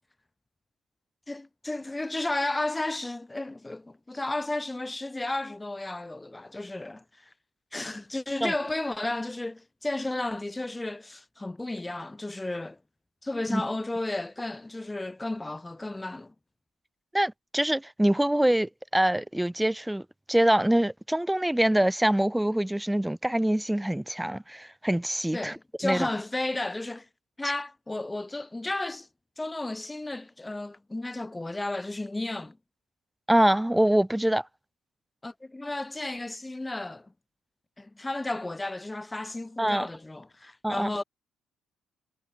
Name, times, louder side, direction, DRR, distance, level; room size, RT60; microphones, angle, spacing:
voice 1, 1.3-7.3 7.7-12.8 13.2-16.3 25.3-27.1 27.4-29.1 29.4-32.6 35.2-37.1 37.8-41.0, left 2 dB, 15° left, 2.8 m, -33 dB
voice 2, 17.1-20.0 20.3-25.6 25.8-26.1 33.3-34.5 39.6-39.9 40.6-40.9, right 1 dB, 5° right, 1.0 m, -24 dB
cardioid pair, 105°, 0 cm